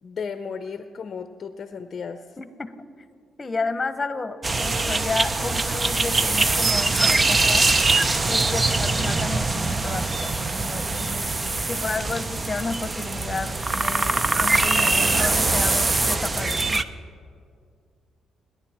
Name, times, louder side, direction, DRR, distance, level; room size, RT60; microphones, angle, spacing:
voice 1, 0.0-2.4 4.8-5.0, left 6 dB, 45° left, 9 dB, 0.6 m, -35 dB
voice 2, 2.4-2.7 3.4-7.7 8.3-11.3 11.7-16.8, left 3 dB, 25° left, 11 dB, 1.2 m, -32 dB
sound 1, 4.4-16.8, right 3 dB, 25° right, 0.7 m, -23 dB
28.5 x 10.5 x 4.5 m, 2.2 s
cardioid pair, 90°, 0 cm